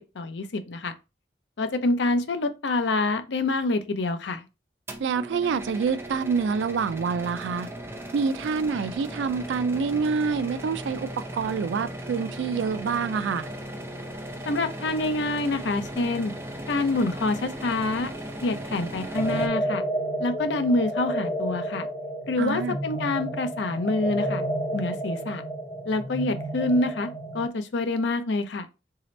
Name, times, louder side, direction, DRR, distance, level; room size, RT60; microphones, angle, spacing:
voice 1, 0.2-0.9 1.6-4.4 14.5-16.3 16.7-18.1 18.4-19.8 20.2-21.9 22.3-24.4 24.7-25.4 25.9-27.1 27.3-28.7, left 2 dB, 80° left, 0.6 m, -26 dB
sound 1, 4.9-19.5, right 1 dB, 15° right, 0.5 m, -37 dB
voice 2, 5.0-7.7 8.1-11.1 11.3-13.5 22.4-22.8, right 5 dB, 85° right, 0.3 m, -27 dB
sound 2, 19.1-27.4, right 1 dB, 25° left, 0.8 m, -31 dB
3.9 x 2.8 x 3.2 m
head